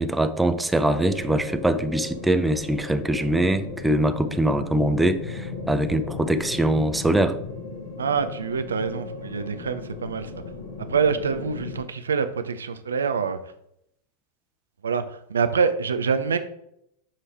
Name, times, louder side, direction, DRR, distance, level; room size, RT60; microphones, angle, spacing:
voice 1, 0.0-7.4, right 1 dB, 5° right, 10 dB, 0.5 m, -23 dB
sound 1, 0.9-11.8, left 3 dB, 65° left, 1.2 m, -36 dB
voice 2, 8.0-10.3 10.9-13.4 14.8-16.4, right 6 dB, 75° right, 9 dB, 0.5 m, -25 dB
7.3 x 3.2 x 4.3 m, 0.77 s
figure-of-eight pair, 90°, 0 cm